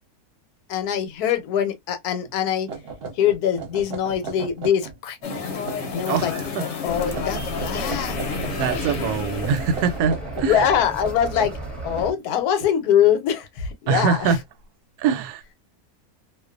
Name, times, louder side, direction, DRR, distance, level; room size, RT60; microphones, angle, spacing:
voice 1, 0.7-2.7 3.1-5.2 5.9-6.3 6.6-8.2 10.5-11.6 11.8-14.4, left 9 dB, 80° left, 1.1 m, -23 dB
sound 1, 2.2-2.3 2.7-5.0 5.3-6.5 7.1-9.0 9.4-12.6, right 4 dB, 50° right, 0.8 m, -36 dB
sound 2, 5.2-10.0, left 6 dB, 55° left, 0.9 m, -31 dB
voice 2, 6.0-6.6 7.0-7.1 8.5-10.6 13.9-14.4 15.0-15.6, right 6 dB, 85° right, 1.1 m, -23 dB
sound 3, 6.8-12.1, right 2 dB, ahead, 0.8 m, -34 dB
2.5 x 2.3 x 2.3 m
omnidirectional pair, 1.6 m